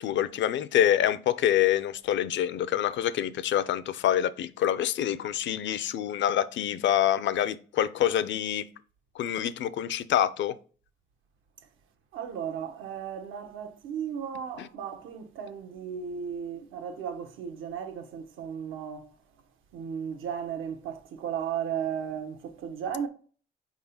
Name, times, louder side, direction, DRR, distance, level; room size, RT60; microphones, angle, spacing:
voice 1, 0.0-8.7 9.1-10.6 14.6-14.7, left 11 dB, 70° left, 0.5 m, -26 dB
voice 2, 12.1-19.1 19.7-23.1, right 8 dB, 85° right, 1.1 m, -35 dB
4.6 x 3.7 x 5.5 m
cardioid pair, 90°, 20 cm